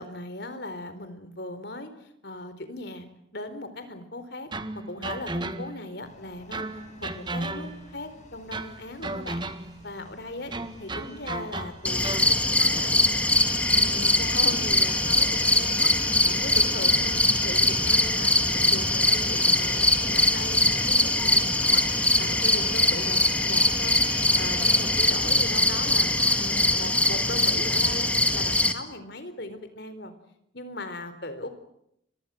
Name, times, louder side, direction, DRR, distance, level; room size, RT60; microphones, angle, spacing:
voice 1, 0.0-1.9 2.2-3.1 3.3-4.5 4.7-6.6 7.0-9.5 9.8-10.5 10.8-13.2 13.7-15.9 16.3-21.8 22.2-24.0 24.3-30.1 30.5-31.5, left 2 dB, 55° left, 10 dB, 4.1 m, -38 dB
sound 1, 4.5-5.9 6.5-8.0 8.5-9.9 10.5-12.4, right 2 dB, 25° right, 1.6 m, -34 dB
sound 2, 6.0-25.0, left 4 dB, 35° left, 7.0 m, -44 dB
sound 3, 11.9-28.7, left 1 dB, 5° left, 1.8 m, -22 dB
29.5 x 24.0 x 7.8 m, 0.76 s
head